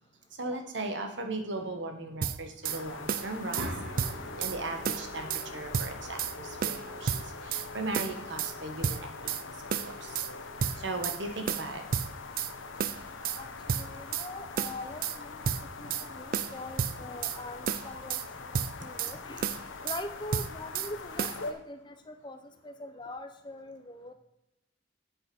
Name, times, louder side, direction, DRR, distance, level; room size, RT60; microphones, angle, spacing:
voice 1, 0.3-3.7 4.4-10.2 10.7-11.8 15.8-15.9, right 2 dB, 70° right, 5 dB, 1.2 m, -38 dB
sound 1, 2.2-2.8 3.1-3.7 4.0-4.6 4.9-5.5 5.7-6.3 6.6-7.7 7.9-8.5 8.8-9.4 9.7-10.3 10.6-11.2 11.5-12.5 12.8-13.4 13.7-14.3 14.6-15.2 15.4-16.1 16.3-17.4 17.7-18.3 18.5-19.1 19.4-20.0 20.3-20.9 21.2-21.4, right 7 dB, 45° right, 0.3 m, -31 dB
sound 2, 2.6-21.5, left 3 dB, 85° left, 0.9 m, -43 dB
sound 3, 3.6-7.5, right 1 dB, 90° right, 1.4 m, -44 dB
voice 2, 13.7-15.5 15.8-19.5 19.8-22.4 22.6-24.1, left 2 dB, 25° left, 8 dB, 0.5 m, -43 dB
8.0 x 5.1 x 6.0 m, 0.89 s
head